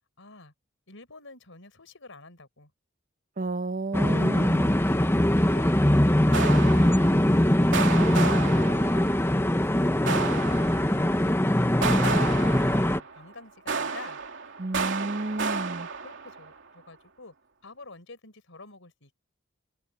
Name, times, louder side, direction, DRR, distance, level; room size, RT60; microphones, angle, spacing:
voice 1, 0.2-0.5 0.9-2.7 4.8-5.2 5.5-5.7 6.2-7.8 8.6-14.2 14.9-15.6 16.0-17.3 17.6-19.2, left 3 dB, 65° left, 5.9 m, -50 dB
voice 2, 3.4-4.8 14.6-15.9, right 2 dB, 40° right, 1.0 m, -31 dB
sound 1, 3.9-13.0, left 1 dB, 10° left, 1.0 m, -22 dB
sound 2, 5.5-5.9 6.3-7.4 7.7-9.3 10.1-11.2 11.8-13.3 13.7-16.6, right 5 dB, 65° right, 2.9 m, -32 dB
head